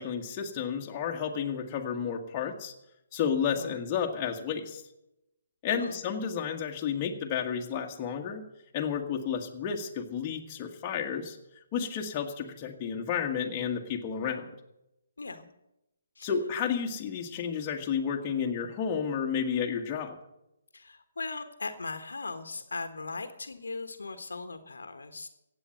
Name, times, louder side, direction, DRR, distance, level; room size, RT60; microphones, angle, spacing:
voice 1, 0.0-2.7 3.1-4.8 5.6-8.4 8.7-11.4 11.7-14.5 16.2-20.2, left 7 dB, 25° left, 1 dB, 1.7 m, -31 dB
voice 2, 5.7-6.0 15.2-15.5 16.2-16.3 20.7-25.3, left 3 dB, 70° left, 9 dB, 1.4 m, -39 dB
16.0 x 8.5 x 7.7 m, 0.88 s
figure-of-eight pair, 140°, 0 cm